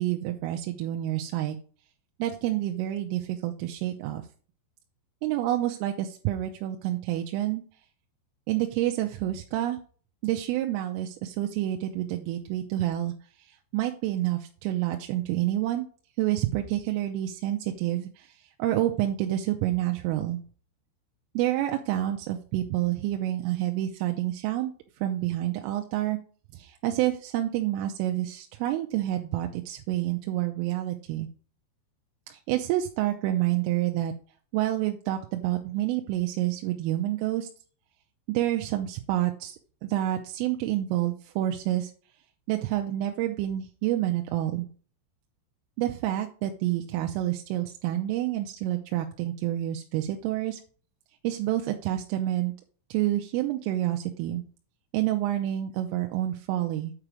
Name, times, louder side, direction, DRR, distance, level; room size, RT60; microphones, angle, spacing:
voice 1, 0.0-1.6 2.2-4.2 5.2-7.6 8.5-9.8 10.2-13.1 13.5-15.9 16.2-18.3 18.6-20.4 21.4-24.7 25.0-26.2 26.5-31.3 32.3-34.1 34.5-37.5 38.3-39.6 39.8-41.9 42.5-44.7 45.8-50.6 51.2-52.5 52.9-54.4 54.9-56.9, right 14 dB, 85° right, 4 dB, 3.2 m, -28 dB
8.9 x 4.9 x 4.8 m, 0.42 s
omnidirectional pair, 5.8 m